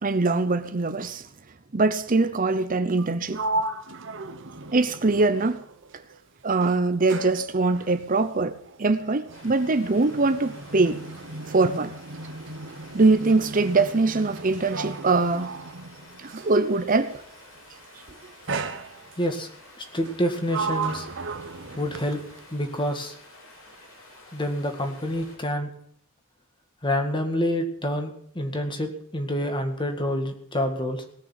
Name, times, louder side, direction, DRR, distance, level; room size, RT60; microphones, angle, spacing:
voice 1, 0.0-1.3 1.7-3.4 4.7-5.6 6.4-11.0 11.5-11.9 12.9-15.5 16.2-17.2, right 3 dB, 40° right, 0.8 m, -22 dB
Sliding door, 2.9-6.2 6.5-16.7 17.5-17.9 18.5-19.4 20.0-22.5, right 3 dB, 60° right, 1.2 m, -35 dB
Stream, 9.3-25.4, left 1 dB, 80° left, 7.7 m, -50 dB
voice 2, 19.2-19.5 19.9-21.1 21.8-22.2 22.5-23.1 24.3-25.7 26.8-31.0, equal, 25° left, 2.0 m, -27 dB
18.0 x 6.8 x 9.4 m
head